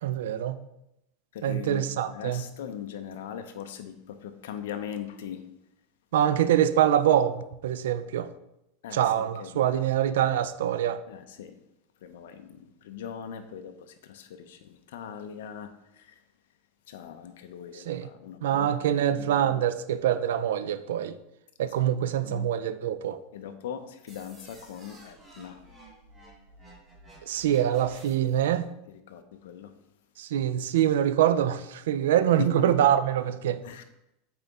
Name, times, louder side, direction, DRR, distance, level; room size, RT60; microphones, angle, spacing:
voice 1, 0.0-0.6 1.4-2.4 6.1-8.3 8.9-11.0 17.7-18.1 18.4-21.2 21.6-23.2 27.3-28.7 30.2-33.6, right 10 dB, 85° right, 13 dB, 0.4 m, -25 dB
voice 2, 1.3-5.5 8.8-9.7 11.1-11.6 12.0-16.2 16.9-19.6 21.6-21.9 22.2-22.5 23.3-25.6 28.9-29.7 32.4-32.7 33.6-33.8, left 9 dB, 80° left, 7 dB, 0.6 m, -40 dB
sound 1, 24.1-28.5, right 1 dB, 15° right, 2.3 m, -52 dB
7.9 x 3.9 x 3.5 m, 0.86 s
supercardioid pair, 135°, 0 cm